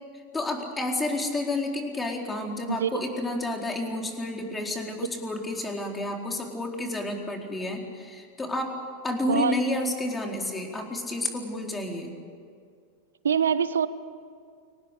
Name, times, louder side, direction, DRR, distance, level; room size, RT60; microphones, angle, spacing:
voice 1, 0.3-8.7 9.0-12.2, left 2 dB, 15° left, 1 dB, 4.3 m, -30 dB
voice 2, 2.7-3.0 9.3-9.5 13.2-13.9, right 7 dB, 85° right, 14 dB, 1.0 m, -24 dB
25.0 x 18.5 x 8.4 m, 2.2 s
hypercardioid pair, 95°, 0 cm